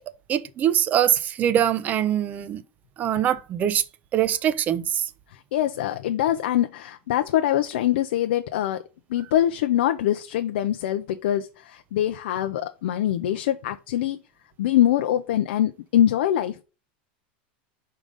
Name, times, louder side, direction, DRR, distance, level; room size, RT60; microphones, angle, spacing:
voice 1, 0.3-2.6 3.0-3.8 4.1-5.0, right 10 dB, 30° right, 0.4 m, -23 dB
voice 2, 5.3-8.8 9.1-14.2 14.6-16.6, left 12 dB, 85° left, 0.5 m, -24 dB
5.3 x 3.8 x 4.8 m
supercardioid pair, 145°, 6 cm